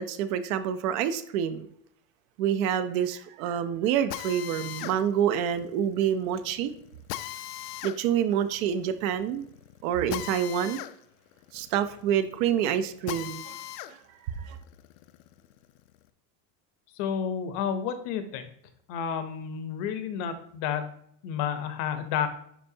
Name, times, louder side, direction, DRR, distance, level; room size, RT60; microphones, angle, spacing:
voice 1, 0.0-1.7 2.4-6.7 7.8-9.4 9.8-10.8 11.5-13.6 13.9-14.0 14.4-14.6, right 9 dB, 60° right, 12 dB, 0.7 m, -27 dB
Drill, 4.1-13.9 14.4-16.0, left 13 dB, 80° left, 0.7 m, -40 dB
voice 2, 17.0-18.5 18.9-20.9 21.2-22.3, left 8 dB, 45° left, 9 dB, 0.8 m, -30 dB
11.0 x 4.4 x 2.7 m, 0.68 s
cardioid pair, 175°, 46 cm